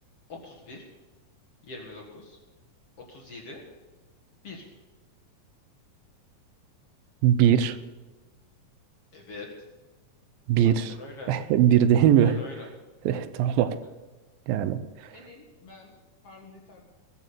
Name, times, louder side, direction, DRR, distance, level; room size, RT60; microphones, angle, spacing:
voice 1, 0.4-0.8 1.7-2.4 3.1-3.6 4.4-4.6 9.1-9.5 10.6-11.3 12.0-12.7 13.4-13.8 15.1-15.9 16.2-16.8, left 3 dB, 50° left, -1 dB, 2.5 m, -44 dB
voice 2, 7.2-7.8 10.5-10.9 11.3-12.4 13.1-13.8 14.5-14.8, right 10 dB, 85° right, 12 dB, 2.6 m, -21 dB
21.0 x 7.1 x 6.8 m, 1.2 s
omnidirectional pair, 4.0 m